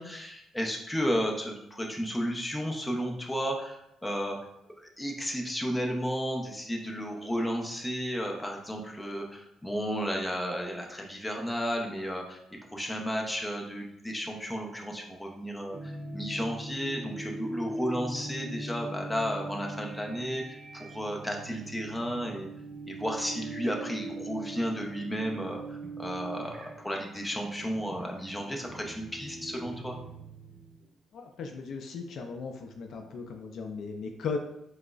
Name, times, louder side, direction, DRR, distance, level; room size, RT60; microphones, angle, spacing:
voice 1, 0.0-4.4 4.8-12.4 12.7-22.5 22.9-30.0, equal, 10° left, 0 dB, 0.6 m, -33 dB
sound 1, 15.7-30.9, right 2 dB, 50° right, 0.6 m, -41 dB
voice 2, 31.1-34.4, left 5 dB, 65° left, 4 dB, 0.4 m, -37 dB
4.8 x 2.0 x 2.3 m, 0.81 s
cardioid pair, 90°, 0 cm